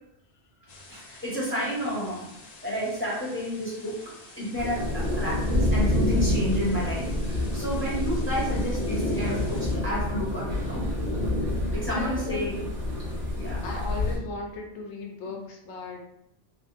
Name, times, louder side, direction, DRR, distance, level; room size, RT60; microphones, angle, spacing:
sound 1, 0.7-9.8, left 3 dB, 45° left, 0.6 m, -49 dB
voice 1, 0.9-2.3 2.6-10.9 11.7-12.6 13.3-13.6, equal, 10° left, -8 dB, 1.0 m, -31 dB
sound 2, 4.6-14.2, left 1 dB, 65° right, 1.4 m, -27 dB
voice 2, 11.9-12.5 13.6-16.1, left 3 dB, 80° left, 0 dB, 1.0 m, -36 dB
3.4 x 2.5 x 2.4 m, 0.81 s
omnidirectional pair, 1.1 m